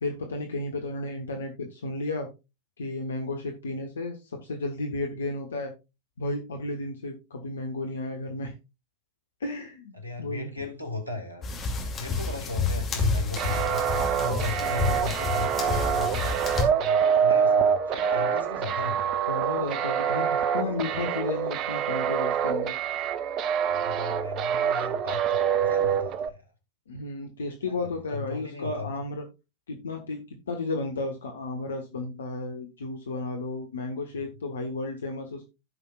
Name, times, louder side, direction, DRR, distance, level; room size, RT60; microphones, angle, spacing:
voice 1, 0.0-2.3 2.8-5.7 6.2-8.5 9.4-10.5 19.3-22.8 26.9-29.2 29.7-35.4, left 2 dB, 70° left, 3 dB, 1.2 m, -33 dB
voice 2, 10.0-11.5 12.0-16.4 16.8-19.1 20.3-21.2 23.7-26.4 27.6-29.0, left 2 dB, 90° left, 2 dB, 2.0 m, -37 dB
sound 1, 11.4-16.6, left 4 dB, 20° left, 2.6 m, -29 dB
sound 2, 13.4-26.3, right 8 dB, 35° right, 0.6 m, -26 dB
16.0 x 5.6 x 2.4 m, 0.27 s
figure-of-eight pair, 90°, 0 cm